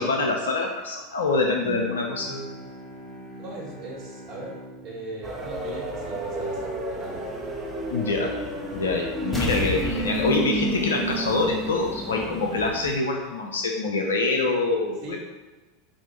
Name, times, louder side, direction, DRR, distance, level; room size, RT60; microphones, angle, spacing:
voice 1, 0.0-2.6 7.9-8.3 8.7-15.2, left 3 dB, 80° left, 1 dB, 0.5 m, -25 dB
Bowed string instrument, 1.6-7.0, equal, 45° left, 0.8 m, -43 dB
voice 2, 3.4-4.6 4.8-7.2 15.0-15.2, right 2 dB, 40° right, -3 dB, 1.5 m, -38 dB
sound 1, 5.2-13.0, right 1 dB, 15° right, 1.1 m, -31 dB
sound 2, 9.3-11.9 12.3-12.4, left 3 dB, 10° left, 1.0 m, -32 dB
4.3 x 2.5 x 4.4 m, 1.2 s
figure-of-eight pair, 85°, 0 cm